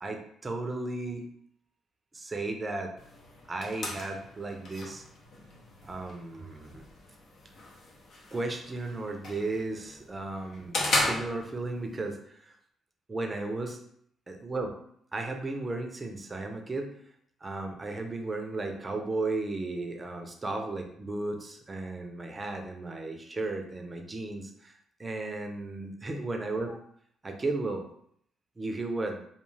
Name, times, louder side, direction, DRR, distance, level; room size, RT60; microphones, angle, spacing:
voice 1, 0.0-1.2 2.1-2.9 3.5-5.0 5.8-6.8 8.3-12.5 13.1-13.8 14.3-14.7 15.1-16.9 17.4-24.7 25.0-26.8 27.2-27.9 28.6-29.2, right 2 dB, 25° right, 4 dB, 0.5 m, -34 dB
sound 1, 3.0-12.0, left 2 dB, 65° left, 0.7 m, -36 dB
2.4 x 2.3 x 3.1 m, 0.66 s
cardioid pair, 90°, 0 cm